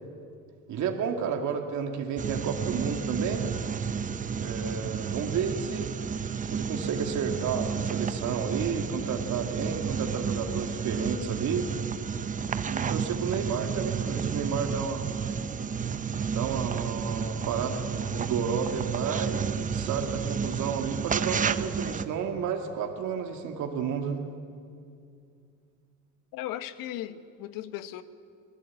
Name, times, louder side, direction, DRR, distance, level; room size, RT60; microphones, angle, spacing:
voice 1, 0.7-3.5 4.4-5.9 6.5-11.7 12.7-15.1 16.3-24.2, right 6 dB, 55° right, 4 dB, 2.2 m, -31 dB
sound 1, 2.2-22.0, right 6 dB, 20° right, 0.8 m, -31 dB
voice 2, 26.3-28.0, left 12 dB, 70° left, 12 dB, 1.3 m, -37 dB
24.0 x 17.5 x 8.5 m, 2.4 s
supercardioid pair, 110°, 35 cm